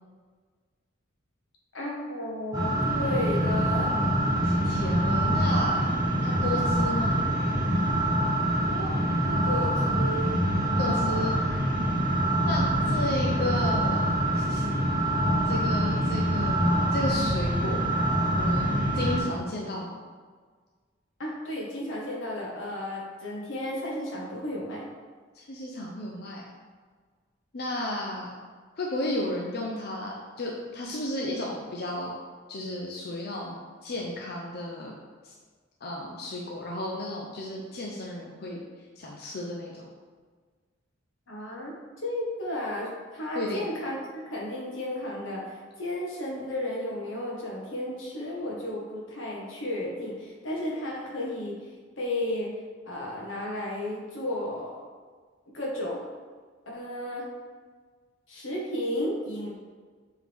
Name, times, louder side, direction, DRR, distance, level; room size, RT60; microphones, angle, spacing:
voice 1, 1.7-3.9 8.7-10.4 21.2-24.9 41.3-41.7 42.0-51.6 52.0-52.5 52.8-54.8 55.5-56.1 56.7-57.3 58.3-59.5, left 1 dB, 85° left, -3 dB, 1.6 m, -33 dB
sound 1, 2.5-19.2, right 1 dB, 20° right, 1.1 m, -25 dB
voice 2, 4.4-5.8 6.2-7.1 10.8-11.3 12.5-14.0 14.3-14.6 15.5-17.8 18.3-19.9 25.4-26.4 27.5-28.3 28.8-32.1 32.5-33.5 33.8-34.9 35.2-35.3 35.8-38.6 39.0-39.8 43.3-43.7, left 1 dB, 55° left, -2 dB, 0.7 m, -33 dB
7.5 x 3.8 x 3.6 m, 1.5 s
head